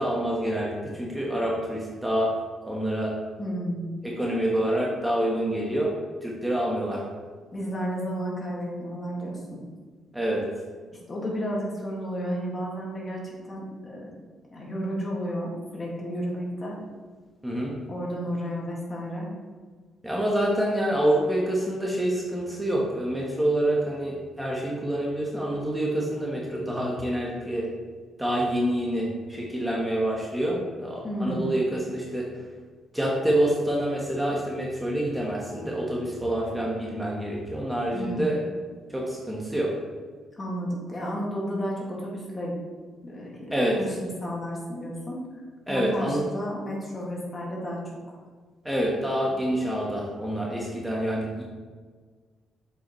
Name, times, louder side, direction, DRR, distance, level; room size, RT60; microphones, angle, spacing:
voice 1, 0.0-2.3 2.6-3.1 4.0-5.9 6.2-7.0 10.1-10.4 17.4-17.8 20.0-27.7 28.2-32.3 32.9-38.4 38.9-39.7 43.5-43.8 45.7-46.2 48.6-51.4, right 1 dB, 5° right, -3 dB, 1.3 m, -27 dB
voice 2, 3.4-3.9 7.5-9.6 11.1-14.1 14.5-16.8 17.9-19.3 31.0-31.5 37.9-38.3 40.3-42.6 43.0-45.2 45.7-47.8 48.1-48.2, equal, 30° left, -3 dB, 2.0 m, -32 dB
7.1 x 5.6 x 3.1 m, 1.5 s
cardioid pair, 90°, 0 cm